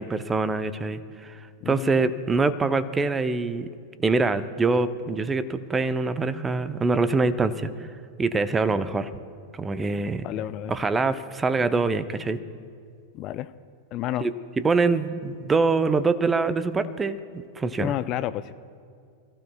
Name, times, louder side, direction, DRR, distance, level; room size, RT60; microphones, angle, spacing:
voice 1, 0.0-1.4 1.7-3.7 4.0-7.7 8.2-9.1 9.5-10.3 10.7-12.4 14.2-14.3 14.6-17.2 17.6-17.9, right 3 dB, 15° right, 13 dB, 0.7 m, -24 dB
voice 2, 1.6-2.0 10.2-10.7 13.1-13.5 13.9-14.2 17.8-18.5, left 13 dB, 35° left, 13 dB, 0.4 m, -30 dB
28.5 x 15.0 x 2.3 m, 2.2 s
figure-of-eight pair, 90°, 0 cm